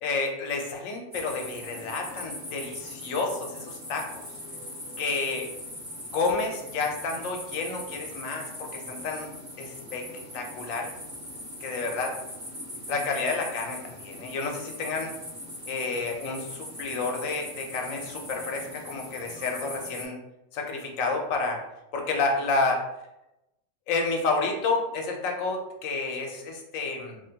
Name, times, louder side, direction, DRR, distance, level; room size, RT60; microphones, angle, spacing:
voice 1, 0.0-4.2 5.0-5.5 6.1-9.3 9.6-10.1 10.3-10.9 11.6-12.1 12.9-15.1 15.7-20.2 20.5-21.6 21.9-22.8 23.9-27.2, left 3 dB, 85° left, 2 dB, 1.0 m, -30 dB
sound 1, 1.1-20.0, left 1 dB, 65° right, 1.5 m, -40 dB
3.1 x 2.1 x 2.7 m, 0.92 s
omnidirectional pair, 1.3 m